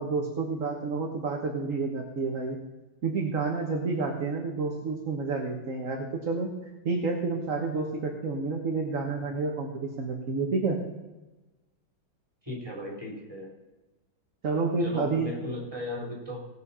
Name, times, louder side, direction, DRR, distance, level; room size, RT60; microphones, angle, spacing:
voice 1, 0.0-2.6 3.0-6.5 6.8-10.8 14.4-15.3, right 4 dB, 45° right, 1 dB, 1.5 m, -29 dB
voice 2, 12.4-13.5 14.8-16.5, left 1 dB, 10° right, -2 dB, 3.6 m, -36 dB
18.5 x 6.4 x 5.6 m, 1.1 s
omnidirectional pair, 2.3 m